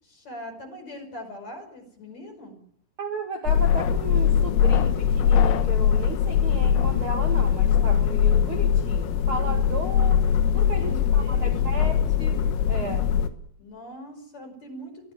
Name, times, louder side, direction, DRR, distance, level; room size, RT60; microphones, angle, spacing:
voice 1, 0.0-2.6 10.7-12.0 13.6-15.1, left 1 dB, 35° left, 5 dB, 6.3 m, -41 dB
voice 2, 3.0-10.2 10.5-13.1, right 3 dB, 65° right, 3 dB, 1.3 m, -34 dB
sound 1, 3.5-13.3, left 8 dB, 90° left, 4.1 m, -21 dB
23.0 x 16.0 x 9.8 m, 0.67 s
omnidirectional pair, 5.7 m